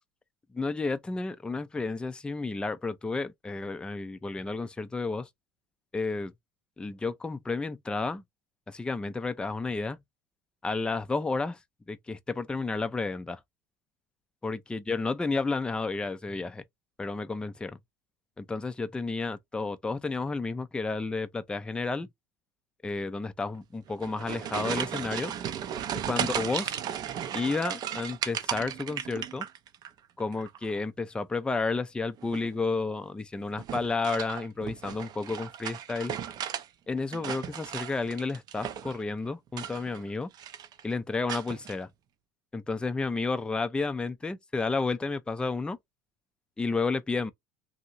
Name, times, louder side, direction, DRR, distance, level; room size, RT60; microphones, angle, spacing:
voice 1, 0.5-5.3 5.9-6.3 6.8-8.2 8.7-10.0 10.6-11.6 11.9-13.4 14.4-16.6 17.0-17.8 18.4-22.1 22.8-25.3 26.1-26.7 27.3-29.5 30.2-36.1 36.9-40.3 40.8-41.9 42.5-45.8 46.6-47.3, left 3 dB, 10° left, 0.4 m, -31 dB
sound 1, 23.9-29.9 30.2-30.8 32.2-32.6 33.6-36.7 37.0-39.0 39.5-40.1 40.3-40.8 41.3-41.7, right 9 dB, 45° right, 0.5 m, -35 dB
2.8 x 2.5 x 2.7 m
supercardioid pair, 95°, 9 cm